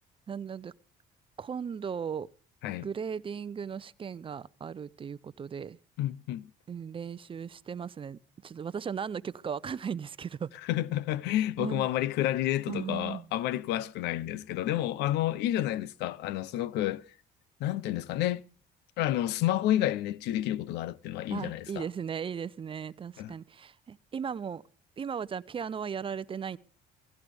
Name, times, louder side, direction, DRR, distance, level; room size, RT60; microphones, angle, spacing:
voice 1, 0.3-0.7 1.4-2.3 2.8-5.8 6.7-10.5 11.6-11.9 12.7-13.3 21.3-24.6 25.0-26.6, right 7 dB, 30° right, 0.6 m, -37 dB
voice 2, 6.0-6.5 10.6-17.1 17.6-18.4 19.0-21.9 23.2-23.3, left 13 dB, 85° left, 0.7 m, -30 dB
17.5 x 15.5 x 3.5 m
cardioid pair, 110°, 17 cm